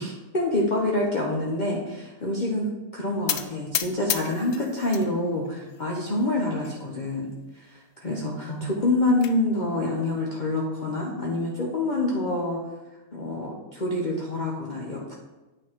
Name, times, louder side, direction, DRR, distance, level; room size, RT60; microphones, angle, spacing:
voice 1, 0.0-2.7 2.9-7.3 7.5-12.6 13.1-15.1, left 2 dB, 40° left, -3 dB, 1.0 m, -27 dB
sound 1, 3.3-5.1 5.4-6.1 6.6-6.7 7.0-7.1 7.5-7.6 8.7-9.3, left 10 dB, 65° left, 0.7 m, -31 dB
9.1 x 4.0 x 4.5 m, 1.1 s
omnidirectional pair, 1.4 m